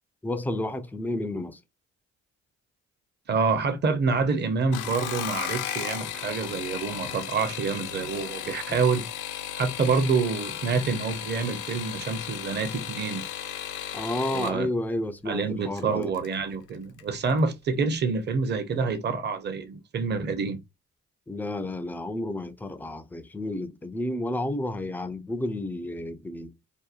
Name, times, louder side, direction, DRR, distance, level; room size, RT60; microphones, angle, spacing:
voice 1, 0.2-1.6 8.7-8.8 13.9-16.1 21.3-26.5, left 1 dB, 5° left, 0.3 m, -31 dB
voice 2, 3.3-9.0 9.6-13.2 14.3-14.7 15.3-20.6, right 4 dB, 35° right, 0.6 m, -27 dB
sound 1, 4.6-14.6 15.8-16.3 16.7-17.1 17.4-17.5, left 10 dB, 80° left, 0.5 m, -35 dB
2.7 x 2.1 x 2.4 m
cardioid pair, 90°, 30 cm